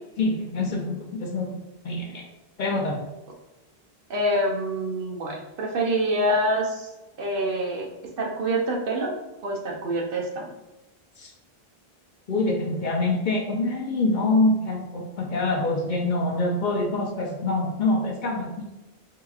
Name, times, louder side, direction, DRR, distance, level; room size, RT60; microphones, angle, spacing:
voice 1, 0.2-1.6 1.8-2.2 2.6-3.0 11.2-11.3 12.3-18.7, left 2 dB, 55° left, 0 dB, 0.6 m, -25 dB
voice 2, 4.1-6.9 7.2-7.9 8.2-9.1 9.4-10.5, right 1 dB, 65° right, 0 dB, 0.8 m, -26 dB
4.5 x 2.9 x 2.3 m, 1.0 s
omnidirectional pair, 1.0 m